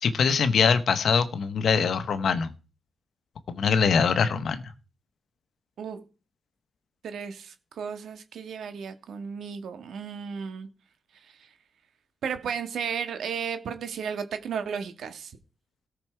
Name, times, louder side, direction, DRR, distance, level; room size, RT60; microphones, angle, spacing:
voice 1, 0.0-2.5 3.5-4.6, left 6 dB, 65° left, 12 dB, 1.2 m, -23 dB
voice 2, 7.0-10.7 11.2-11.5 12.2-15.3, right 7 dB, 80° right, 9 dB, 1.7 m, -34 dB
17.5 x 6.0 x 4.6 m, 0.35 s
cardioid pair, 120°, 0 cm